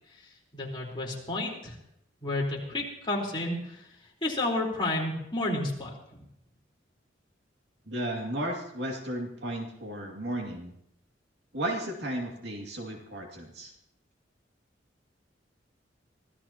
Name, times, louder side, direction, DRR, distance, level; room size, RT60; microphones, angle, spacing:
voice 1, 0.5-1.7 2.2-3.8 4.2-6.2, left 2 dB, 25° left, -3 dB, 4.0 m, -31 dB
voice 2, 7.9-10.7 11.5-13.7, right 1 dB, 65° right, 1 dB, 2.5 m, -34 dB
24.5 x 15.5 x 3.0 m, 0.78 s
head